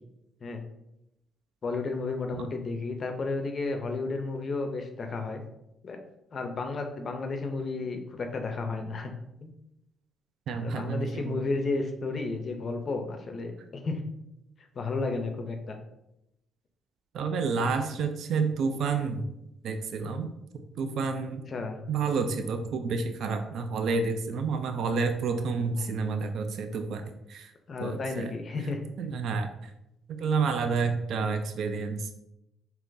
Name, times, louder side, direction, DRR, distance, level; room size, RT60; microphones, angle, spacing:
voice 1, 1.6-5.4 5.8-6.0 6.3-9.1 9.4-9.5 10.6-14.0 14.8-15.8 21.5-21.8 25.8-25.9 27.7-28.8, left 3 dB, 45° left, 5 dB, 0.5 m, -32 dB
voice 2, 10.5-11.4 17.1-19.3 19.6-20.3 20.8-21.4 21.9-27.5 27.8-28.3 29.0-29.7 30.1-32.2, right 4 dB, 70° right, 7 dB, 0.3 m, -29 dB
3.6 x 2.8 x 2.6 m, 0.86 s
cardioid pair, 90°, 0 cm